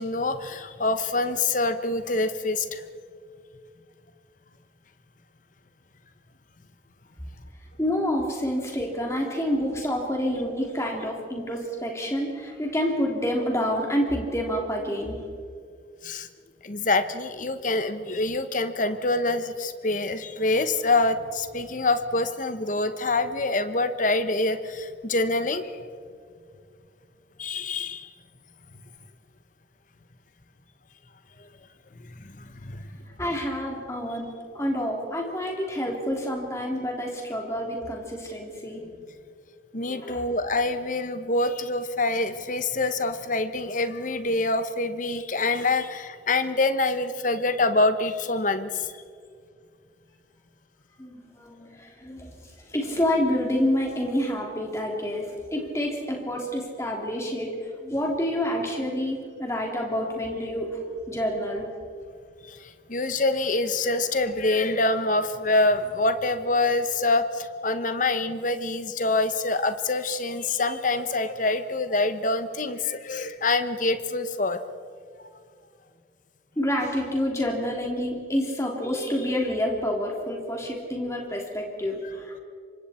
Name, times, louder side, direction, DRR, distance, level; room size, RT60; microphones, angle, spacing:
voice 1, 0.0-2.8 16.0-16.3 16.6-25.7 27.4-28.1 32.0-32.9 39.7-48.9 62.4-74.6 75.2-75.3, left 2 dB, 40° left, 10 dB, 1.1 m, -26 dB
voice 2, 7.8-15.2 33.2-38.9 40.0-40.2 51.0-61.7 76.6-82.4, equal, 15° left, 0 dB, 3.1 m, -28 dB
27.5 x 24.5 x 4.4 m, 2.2 s
head